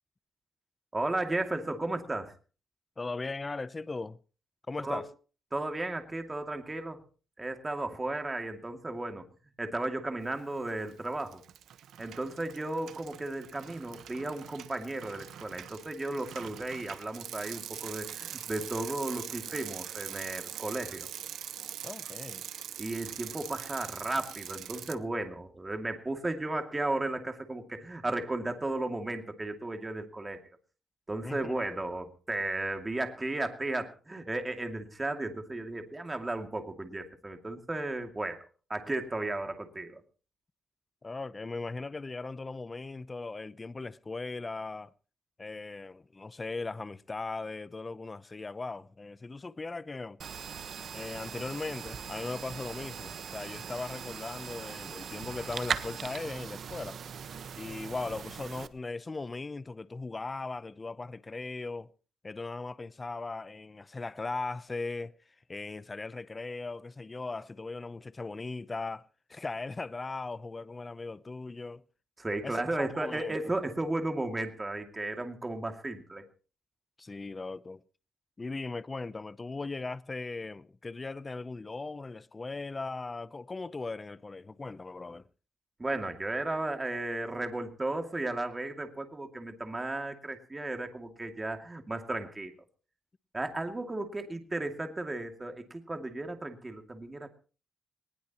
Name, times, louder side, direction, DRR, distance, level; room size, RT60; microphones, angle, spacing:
voice 1, 0.9-2.3 4.8-5.0 5.5-7.0 7.4-9.3 9.6-11.4 12.0-21.1 22.8-30.4 31.1-40.0 72.2-76.2 85.8-92.5 93.3-97.3, right 2 dB, 15° right, 2.4 m, -34 dB
voice 2, 3.0-4.2 4.7-5.1 21.8-22.5 31.2-31.5 41.0-44.9 45.4-50.2 50.9-57.0 57.6-61.9 62.2-65.1 65.5-69.0 69.3-71.8 72.4-73.4 77.0-77.8 78.4-85.3, left 3 dB, 25° left, 0.7 m, -38 dB
Bicycle, 10.5-10.9 11.2-24.9, right 10 dB, 75° right, 1.1 m, -43 dB
sound 1, 50.2-58.7, right 7 dB, 55° right, 1.2 m, -40 dB
20.0 x 19.5 x 3.0 m
cardioid pair, 115°, 0 cm